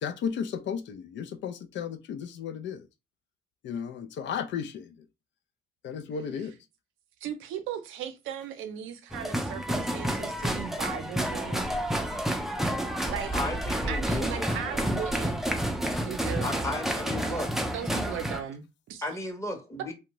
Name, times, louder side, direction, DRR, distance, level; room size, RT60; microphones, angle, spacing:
voice 1, 0.0-2.8 3.6-4.9 5.8-6.5 12.0-12.1, left 7 dB, 65° left, 0.4 m, -34 dB
voice 2, 7.2-11.7 13.1-13.4 13.9-15.4 16.0-16.8 17.2-19.1, right 9 dB, 85° right, 0.5 m, -37 dB
sound 1, 9.1-18.4, right 1 dB, ahead, 0.4 m, -30 dB
voice 3, 13.3-14.9 16.4-17.5 19.0-19.9, left 1 dB, 15° left, 0.8 m, -35 dB
2.6 x 2.1 x 2.9 m
cardioid pair, 90°, 20 cm